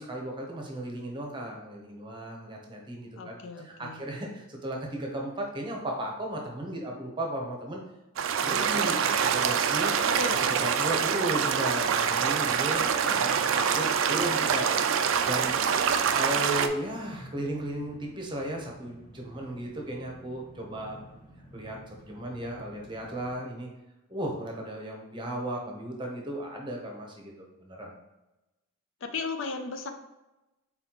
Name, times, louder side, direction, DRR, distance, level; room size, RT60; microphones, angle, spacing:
voice 1, 0.0-7.8 8.4-10.0 10.5-12.8 13.1-14.7 15.2-15.5 16.1-21.0 21.5-23.7 24.1-27.9, right 1 dB, 20° right, 0 dB, 0.8 m, -35 dB
voice 2, 3.2-4.1 10.0-10.6 12.8-13.3 29.0-29.9, left 3 dB, 60° left, 7 dB, 0.5 m, -36 dB
sound 1, 8.2-16.7, right 7 dB, 60° right, 0.3 m, -25 dB
sound 2, 15.1-23.3, equal, 25° left, 0.8 m, -52 dB
4.1 x 4.1 x 2.9 m, 0.99 s
head